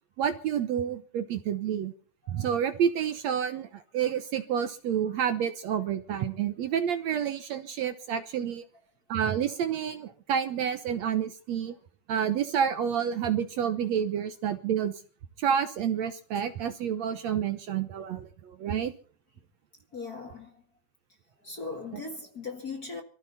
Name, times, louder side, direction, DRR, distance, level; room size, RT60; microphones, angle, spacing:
voice 1, 0.2-1.9 2.3-8.6 9.1-11.7 12.1-14.9 15.4-18.9 21.9-22.0, right 8 dB, 65° right, 2.0 m, -29 dB
voice 2, 19.9-20.6 21.4-23.0, left 4 dB, 35° left, 1.9 m, -39 dB
24.0 x 14.5 x 4.1 m
omnidirectional pair, 3.8 m